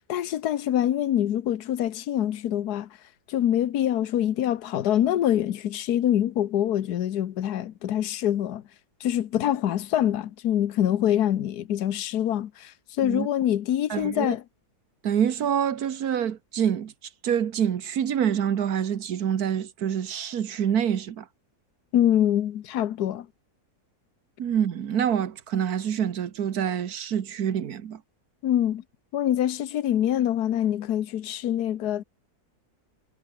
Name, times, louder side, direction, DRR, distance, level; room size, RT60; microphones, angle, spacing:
voice 1, 0.0-2.9 3.3-8.6 9.0-14.4 21.9-23.3 28.4-28.8 29.1-32.0, left 11 dB, 75° left, 1.5 m, -25 dB
voice 2, 13.9-14.3 15.0-16.9 17.2-21.2 24.4-28.0, right 9 dB, 70° right, 1.7 m, -26 dB
omnidirectional pair, 1.7 m